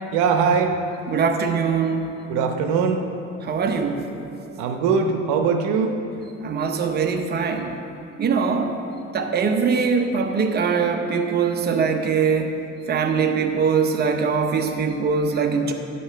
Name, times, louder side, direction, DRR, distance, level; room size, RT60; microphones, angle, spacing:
voice 1, 0.1-0.8 2.3-3.0 4.6-6.0, right 5 dB, 80° right, 5 dB, 0.9 m, -21 dB
voice 2, 1.1-2.2 3.4-4.1 6.4-7.8 8.2-8.8 9.1-12.6 12.9-15.7, right 5 dB, 35° right, 4 dB, 0.9 m, -22 dB
10.0 x 5.5 x 6.6 m, 2.9 s
cardioid pair, 105°, 30 cm